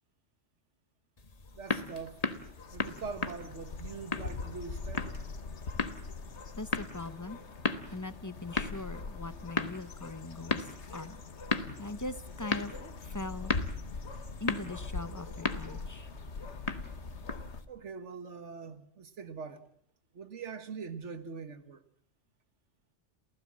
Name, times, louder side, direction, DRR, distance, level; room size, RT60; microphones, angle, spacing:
sound 1, 1.2-17.6, left 3 dB, 35° left, 1.3 m, -37 dB
sound 2, 1.5-17.6, left 4 dB, 70° left, 1.8 m, -42 dB
voice 1, 1.5-2.2 2.7-5.1 17.7-19.6 20.1-21.8, right 5 dB, 80° right, 1.8 m, -43 dB
voice 2, 6.5-7.4 7.9-11.2 11.8-12.7 13.0-13.5 14.4-16.1, left 2 dB, 20° left, 0.7 m, -41 dB
28.5 x 16.0 x 7.5 m
omnidirectional pair, 1.2 m